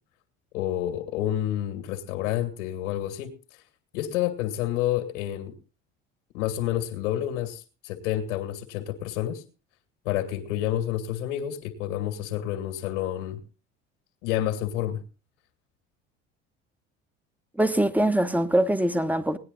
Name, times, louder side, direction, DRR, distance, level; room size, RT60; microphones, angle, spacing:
voice 1, 0.5-3.3 3.9-5.5 6.3-9.4 10.0-13.4 14.2-15.0, left 12 dB, 80° left, 2.2 m, -29 dB
voice 2, 17.6-19.4, right 1 dB, 5° right, 1.4 m, -23 dB
18.5 x 10.0 x 4.0 m
hypercardioid pair, 65°, 35 cm